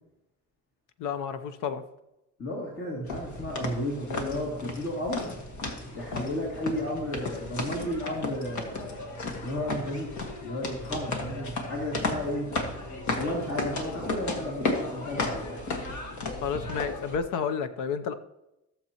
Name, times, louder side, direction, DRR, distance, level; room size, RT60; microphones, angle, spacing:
voice 1, 1.0-1.8 16.4-18.1, left 6 dB, 85° left, 11 dB, 0.8 m, -31 dB
voice 2, 2.4-5.3 5.9-9.1 9.4-10.1 10.4-12.5 13.2-15.6, left 1 dB, 50° left, -3 dB, 2.7 m, -33 dB
sound 1, 3.1-17.2, left 2 dB, 70° left, 1.7 m, -34 dB
16.5 x 6.8 x 3.0 m, 0.92 s
cardioid pair, 90°, 30 cm